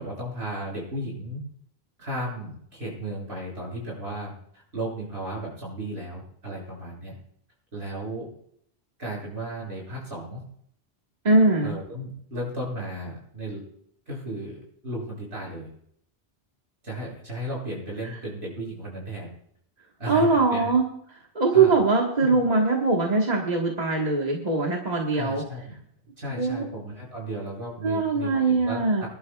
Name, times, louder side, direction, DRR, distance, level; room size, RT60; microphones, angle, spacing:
voice 1, 0.0-1.4 2.0-7.2 7.7-8.3 9.0-10.4 11.6-13.7 14.1-15.7 16.8-19.3 20.0-20.7 21.5-21.7 22.3-22.4 25.1-25.8 26.2-29.1, right 1 dB, 75° right, -4 dB, 7.4 m, -35 dB
voice 2, 11.2-11.8 20.1-20.8 21.3-25.4 26.3-26.6 27.8-29.0, right 3 dB, 40° right, -1 dB, 1.6 m, -22 dB
26.0 x 11.5 x 2.3 m, 0.68 s
omnidirectional pair, 1.1 m